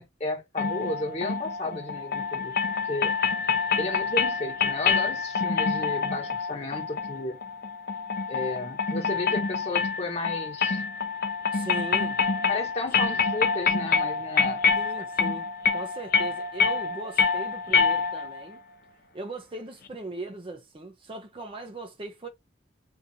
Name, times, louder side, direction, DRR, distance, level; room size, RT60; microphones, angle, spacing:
voice 1, 0.0-2.6 2.8-3.1 3.8-7.4 8.3-10.8 12.5-14.6, left 2 dB, 35° left, 1.3 m, -33 dB
sound 1, 0.6-18.4, left 5 dB, 50° left, 0.5 m, -26 dB
voice 2, 11.5-12.2 14.8-18.6 19.1-22.3, right 2 dB, 30° right, 0.5 m, -39 dB
2.7 x 2.4 x 4.1 m
head